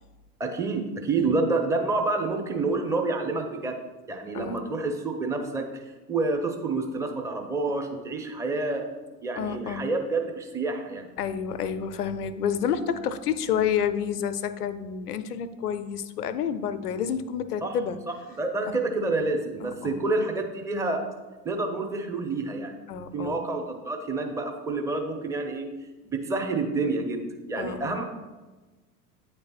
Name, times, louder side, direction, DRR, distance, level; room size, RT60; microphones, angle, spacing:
voice 1, 0.4-3.8 4.1-8.9 9.2-11.1 17.6-17.7 18.4-21.1 21.4-22.8 23.1-25.7 26.0-28.0, right 3 dB, 5° right, 3 dB, 0.6 m, -28 dB
voice 2, 9.4-9.8 11.2-18.0 19.6-20.0 22.9-23.4 27.6-28.0, left 8 dB, 80° left, 12 dB, 0.6 m, -29 dB
8.8 x 3.3 x 4.1 m, 1.2 s
figure-of-eight pair, 80°, 46 cm